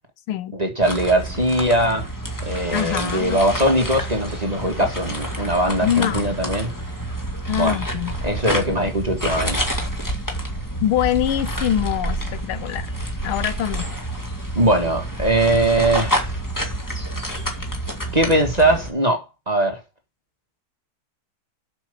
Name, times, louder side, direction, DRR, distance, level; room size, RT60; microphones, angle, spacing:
voice 1, 0.5-2.1 2.4-6.7 7.6-7.8 8.2-9.6 14.5-16.3 18.1-19.8, right 1 dB, 20° right, 1.6 m, -21 dB
sound 1, 0.8-18.9, right 1 dB, 10° left, 1.6 m, -28 dB
voice 2, 2.7-3.4 5.8-6.3 7.5-8.1 10.8-12.9 13.2-13.9, left 11 dB, 80° left, 1.6 m, -24 dB
7.3 x 6.4 x 6.9 m
omnidirectional pair, 2.4 m